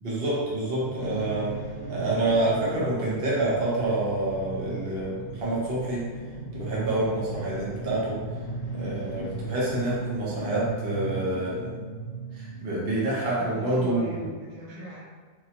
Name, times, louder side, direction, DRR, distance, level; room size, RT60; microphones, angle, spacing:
voice 1, 0.0-1.5 1.9-6.0 6.5-8.2 8.7-11.7 12.3-14.3, right 2 dB, 45° right, -6 dB, 1.1 m, -27 dB
sound 1, 0.8-4.4 5.0-13.2, right 2 dB, 75° left, 0.5 m, -39 dB
sound 2, 0.8-10.7, right 3 dB, 35° left, 1.0 m, -40 dB
voice 2, 13.2-15.0, right 1 dB, 75° right, -5 dB, 1.3 m, -41 dB
3.8 x 2.9 x 2.8 m, 1.5 s
omnidirectional pair, 1.6 m